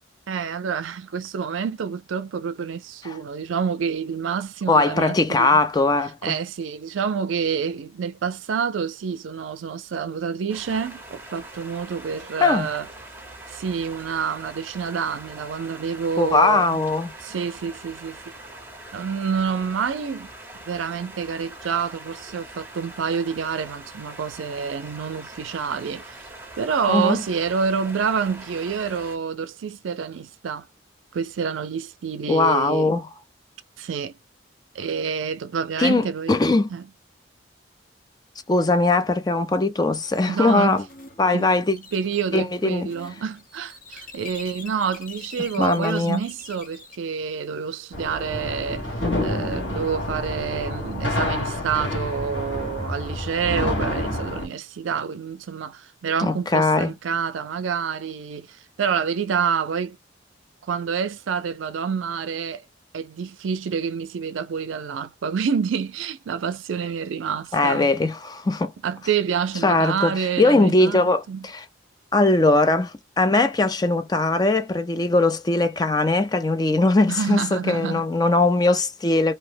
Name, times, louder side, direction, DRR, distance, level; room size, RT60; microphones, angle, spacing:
voice 1, 0.3-5.6 6.2-12.9 13.5-16.8 17.2-18.2 18.9-20.3 20.7-26.0 26.6-30.7 31.1-32.9 33.8-34.1 34.7-36.3 36.7-36.8 40.3-40.8 41.3-48.9 49.2-60.0 60.7-62.6 62.9-67.9 68.8-71.5 77.1-78.1, right 6 dB, 90° right, 0.4 m, -28 dB
voice 2, 4.7-6.4 12.4-12.7 16.2-17.1 26.9-27.2 32.3-33.1 35.8-36.7 38.5-40.8 41.2-41.8 42.3-42.9 45.6-46.2 56.2-56.9 67.5-68.7 69.6-71.6 72.1-79.3, left 2 dB, 20° left, 0.4 m, -20 dB
sound 1, 10.5-29.2, right 2 dB, 10° right, 0.8 m, -42 dB
sound 2, 40.0-47.0, left 4 dB, 45° left, 0.9 m, -45 dB
sound 3, 47.9-54.5, left 1 dB, 70° left, 1.2 m, -28 dB
2.7 x 2.1 x 3.2 m
head